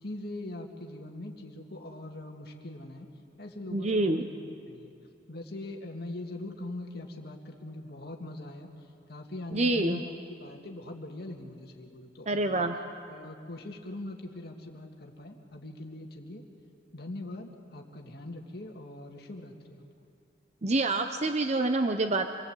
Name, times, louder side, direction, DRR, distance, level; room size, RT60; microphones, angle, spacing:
voice 1, 0.0-3.1 3.4-4.9 5.3-8.7 9.1-12.7 13.1-16.4 16.9-19.8, left 2 dB, 60° left, 1 dB, 1.8 m, -42 dB
voice 2, 3.7-4.3 9.5-10.0 12.3-12.8 20.6-22.3, right 2 dB, 40° right, 7 dB, 0.8 m, -27 dB
26.5 x 20.0 x 8.0 m, 2.5 s
head